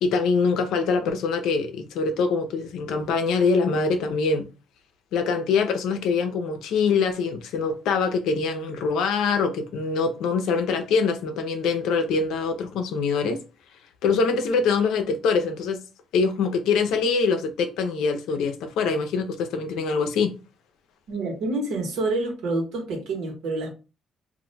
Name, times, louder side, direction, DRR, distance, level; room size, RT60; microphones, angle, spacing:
voice 1, 0.0-4.5 5.1-13.4 14.0-15.8 16.1-20.3, left 5 dB, 90° left, 0.5 m, -24 dB
voice 2, 21.1-23.7, right 2 dB, 85° right, 1.2 m, -27 dB
2.6 x 2.2 x 4.0 m
cardioid pair, 90°, 0 cm